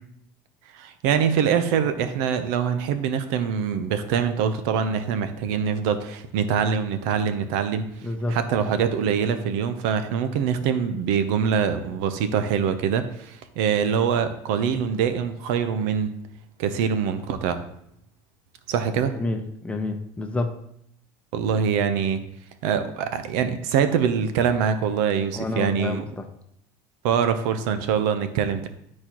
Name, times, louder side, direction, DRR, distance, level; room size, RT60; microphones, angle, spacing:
voice 1, 0.7-7.9 8.3-16.1 16.6-17.6 18.7-19.1 21.3-22.2 22.6-26.0 27.0-28.7, right 7 dB, 80° right, 10 dB, 0.7 m, -24 dB
voice 2, 8.0-8.4 19.1-20.5 25.3-26.2, left 2 dB, 10° left, 5 dB, 0.8 m, -29 dB
12.0 x 4.3 x 3.0 m, 0.72 s
supercardioid pair, 125°, 10 cm